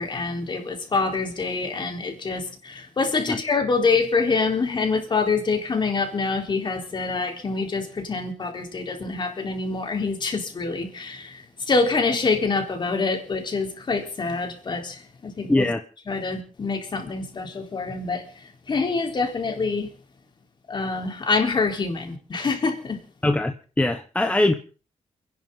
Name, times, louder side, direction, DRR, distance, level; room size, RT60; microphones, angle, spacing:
voice 1, 0.0-15.7 16.1-19.9 20.7-23.0, left 4 dB, 40° left, 3.9 m, -26 dB
voice 2, 15.5-15.8 23.2-24.5, left 2 dB, 10° left, 1.1 m, -21 dB
29.0 x 11.0 x 3.9 m
wide cardioid pair, 130°, 12 cm